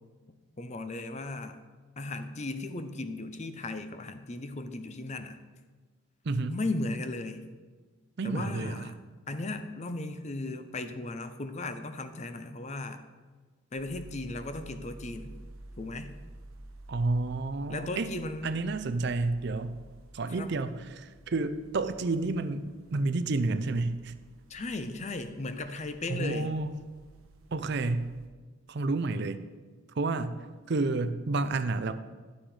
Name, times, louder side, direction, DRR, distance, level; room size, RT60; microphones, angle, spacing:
voice 1, 0.6-1.6 2.0-5.4 6.5-7.4 8.2-8.9 9.3-13.0 13.7-15.3 15.8-16.1 17.7-18.5 20.4-20.5 24.5-26.5, left 2 dB, 35° left, 9 dB, 0.6 m, -36 dB
voice 2, 6.2-6.6 8.2-8.9 16.9-18.1 18.4-19.8 20.1-24.1 26.1-26.7 27.5-28.1 28.7-29.5 29.9-32.0, right 3 dB, 55° right, 11 dB, 0.5 m, -30 dB
sound 1, 13.8-28.3, right 1 dB, 80° right, 1.0 m, -52 dB
11.5 x 6.3 x 4.9 m, 1.4 s
head